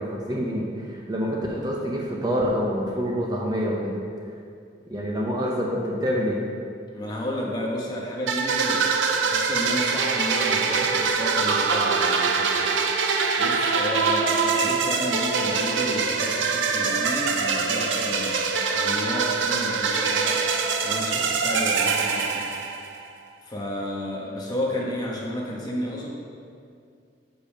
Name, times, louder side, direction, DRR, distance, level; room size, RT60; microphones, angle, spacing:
voice 1, 0.0-4.0 4.9-6.4, equal, 20° right, -3 dB, 0.7 m, -26 dB
voice 2, 6.9-8.9 9.2-12.8 13.4-18.4 18.7-20.4 20.8-22.5 23.4-26.1, left 1 dB, 20° left, -3 dB, 1.2 m, -32 dB
sound 1, 8.3-23.0, right 5 dB, 85° right, 0.6 m, -24 dB
6.9 x 5.3 x 5.2 m, 2.3 s
head